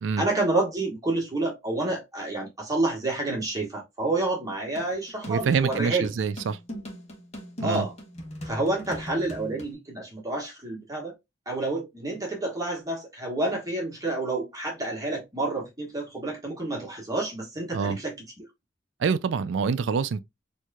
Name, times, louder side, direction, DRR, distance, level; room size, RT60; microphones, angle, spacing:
voice 1, 0.2-6.1 7.6-7.9 8.4-11.1 11.4-18.4, right 2 dB, 20° right, 1.4 m, -29 dB
sound 1, 4.7-9.7, equal, 35° left, 1.1 m, -40 dB
voice 2, 5.3-6.6 7.6-7.9 17.7-18.0 19.0-20.2, right 5 dB, 65° right, 0.4 m, -26 dB
4.5 x 2.7 x 2.3 m
head